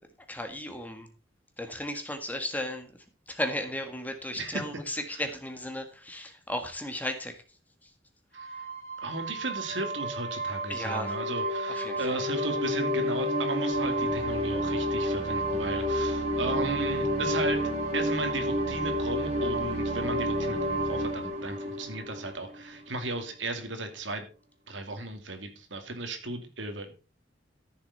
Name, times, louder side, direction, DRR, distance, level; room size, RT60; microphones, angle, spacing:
voice 1, 0.3-1.1 1.6-7.4 7.8-7.9 10.7-11.1 11.7-12.2, left 1 dB, 10° left, 5 dB, 1.8 m, -35 dB
voice 2, 8.3-8.7 9.0-24.3 24.7-27.0, right 2 dB, 80° right, 6 dB, 2.5 m, -35 dB
sound 1, 8.4-22.8, equal, 35° right, 3.8 m, -30 dB
14.0 x 7.2 x 4.2 m, 0.33 s
head